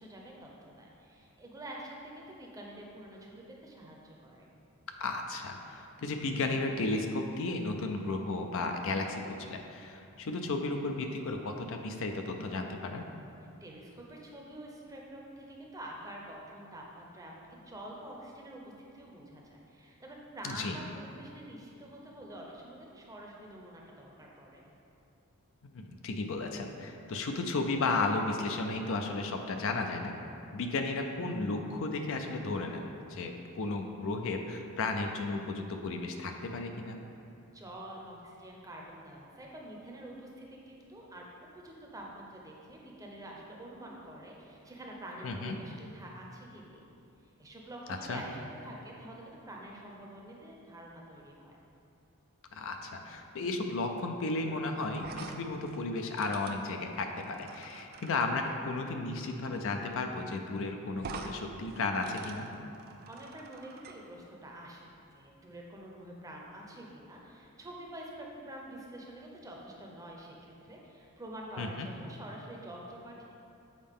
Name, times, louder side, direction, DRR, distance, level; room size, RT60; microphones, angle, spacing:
voice 1, 0.0-4.5 13.6-24.6 37.5-41.2 41.5-46.8 47.4-51.6 63.1-73.2, right 1 dB, 15° right, -2 dB, 0.7 m, -47 dB
voice 2, 5.0-13.1 20.4-20.8 25.7-30.1 30.5-37.0 45.2-45.6 48.1-48.2 52.5-62.5 71.6-71.9, left 3 dB, 60° left, 4 dB, 0.5 m, -34 dB
sound 1, 54.9-58.3 59.7-59.9 60.2-60.3 61.0-61.3 61.7-64.0, right 4 dB, 45° right, 0.3 m, -46 dB
7.3 x 4.2 x 3.6 m, 2.7 s
head